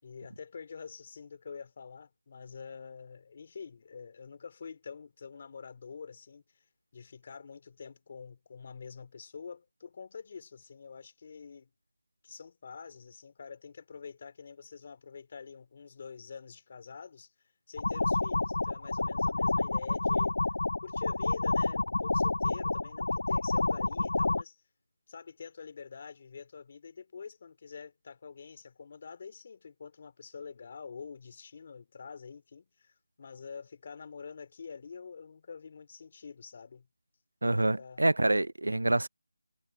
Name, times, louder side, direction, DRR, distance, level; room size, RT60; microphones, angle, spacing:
voice 1, 0.0-6.6 6.9-11.7 12.2-17.3 17.7-20.4 20.8-24.6 25.1-36.9 37.6-38.1, left 5 dB, 35° left, 3.4 m, -46 dB
sound 1, 17.8-24.4, left 2 dB, 65° left, 0.5 m, -29 dB
voice 2, 37.4-39.1, right 2 dB, 85° right, 0.6 m, -26 dB
figure-of-eight pair, 170°, 0 cm